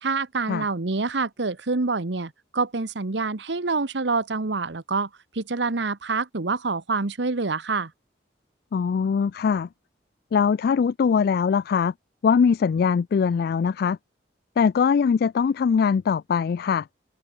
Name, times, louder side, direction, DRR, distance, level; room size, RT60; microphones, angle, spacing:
voice 1, 0.0-5.1 5.3-7.9, right 3 dB, 70° right, 1.1 m, -26 dB
voice 2, 8.7-9.7 10.3-11.9 12.2-14.0 14.6-16.9, left 6 dB, 55° left, 0.3 m, -21 dB
head